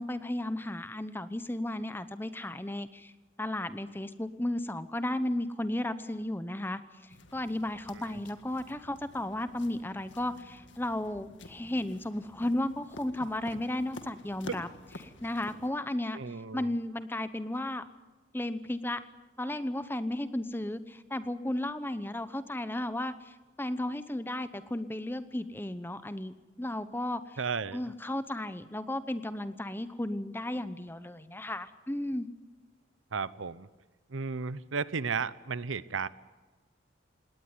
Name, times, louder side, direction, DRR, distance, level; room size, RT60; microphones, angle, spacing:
voice 1, 0.0-3.1 3.4-6.8 7.3-14.7 15.0-17.8 18.3-19.0 19.4-27.4 27.7-32.3, left 1 dB, 10° left, 12 dB, 0.8 m, -34 dB
sound 1, 7.1-15.7, left 2 dB, 70° left, 1.9 m, -50 dB
voice 2, 16.1-16.7 27.4-27.8 33.1-33.7 34.1-36.1, right 5 dB, 90° right, 17 dB, 0.8 m, -34 dB
19.5 x 18.5 x 9.6 m, 1.2 s
head